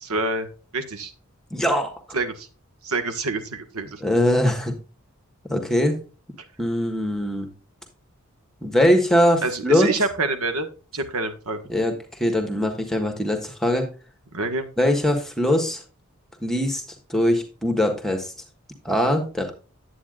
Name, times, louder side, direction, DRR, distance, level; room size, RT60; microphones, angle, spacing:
voice 1, 0.0-0.5 0.7-1.1 2.1-2.5 2.8-4.0 9.4-10.7 10.9-11.6 14.3-14.7, right 3 dB, 85° right, 7 dB, 1.5 m, -26 dB
voice 2, 1.5-1.9 4.0-4.7 5.5-6.0 6.6-7.5 8.6-9.9 11.7-11.9 12.2-13.9 14.8-15.8 16.4-16.8 17.1-18.3 18.8-19.5, left 1 dB, ahead, 4 dB, 1.4 m, -21 dB
9.8 x 8.5 x 2.5 m, 0.34 s
head